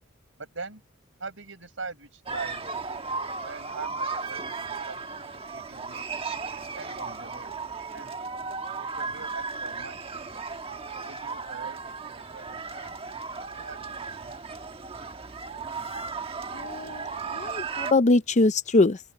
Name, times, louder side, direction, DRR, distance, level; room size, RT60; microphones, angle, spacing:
voice 1, 0.4-0.8 1.2-2.7 3.4-6.0 6.7-7.6 7.9-8.4 8.9-10.3 11.1-13.0 13.5-13.8 14.1-14.3, right 3 dB, 80° right, 4.9 m, -42 dB
sound 1, 2.3-17.9, right 4 dB, 30° right, 1.4 m, -35 dB
voice 2, 16.5-17.1 17.3-19.0, left 2 dB, 40° left, 0.6 m, -22 dB
open air
head